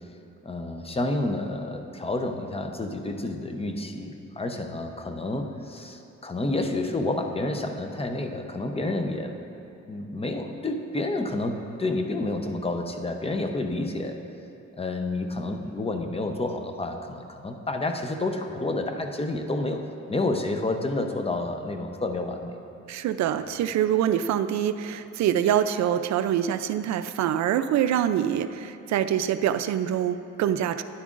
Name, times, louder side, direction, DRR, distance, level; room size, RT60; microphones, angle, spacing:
voice 1, 0.4-9.3 9.9-14.2 14.7-19.8 20.1-22.5, left 2 dB, 20° left, 5 dB, 0.7 m, -29 dB
voice 2, 22.9-30.8, right 10 dB, 65° right, 11 dB, 0.4 m, -25 dB
12.0 x 10.0 x 2.5 m, 2.8 s
cardioid pair, 90°, 30 cm